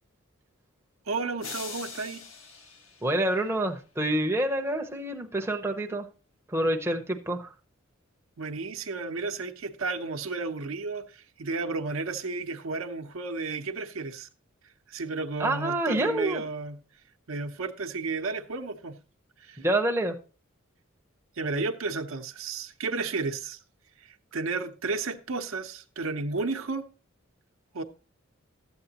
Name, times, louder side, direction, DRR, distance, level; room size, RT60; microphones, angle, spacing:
voice 1, 1.1-2.2 8.4-14.3 14.9-16.8 17.3-19.0 19.4-19.6 21.4-23.6 24.0-26.9 27.7-27.8, right 3 dB, 80° right, 0.7 m, -33 dB
sound 1, 1.4-3.7, left 4 dB, 80° left, 1.6 m, -43 dB
voice 2, 3.0-6.1 6.5-7.5 15.4-16.4 19.6-20.2, right 1 dB, 10° right, 0.7 m, -27 dB
12.0 x 8.0 x 2.8 m
head